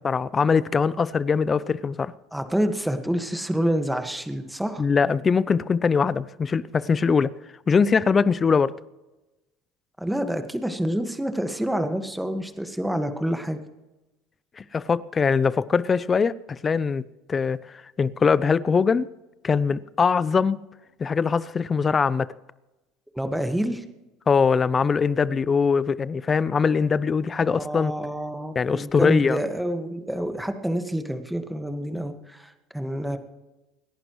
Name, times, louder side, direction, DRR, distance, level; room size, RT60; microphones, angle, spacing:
voice 1, 0.0-2.1 4.8-7.3 7.7-8.7 14.6-17.0 17.3-19.1 19.4-20.6 21.0-22.3 24.3-27.9 28.6-29.4, left 5 dB, 30° left, 0.6 m, -22 dB
voice 2, 2.3-4.8 10.0-13.6 23.1-23.8 27.4-33.2, equal, 5° right, 1.7 m, -28 dB
27.0 x 11.0 x 3.1 m
supercardioid pair, 90°, 0 cm